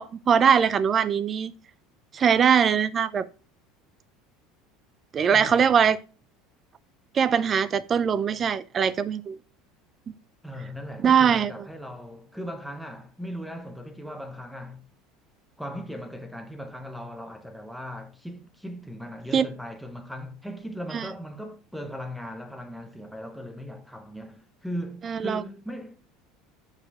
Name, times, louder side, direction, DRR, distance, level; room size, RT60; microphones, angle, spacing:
voice 1, 0.0-1.5 2.1-3.3 5.1-6.0 7.1-9.4 11.0-11.5 19.3-19.4 20.9-21.1 25.0-25.4, right 7 dB, 30° right, 0.4 m, -21 dB
voice 2, 5.3-5.7 10.4-14.9 15.6-26.0, equal, ahead, 0.8 m, -38 dB
6.4 x 4.9 x 3.6 m
supercardioid pair, 130°, 0 cm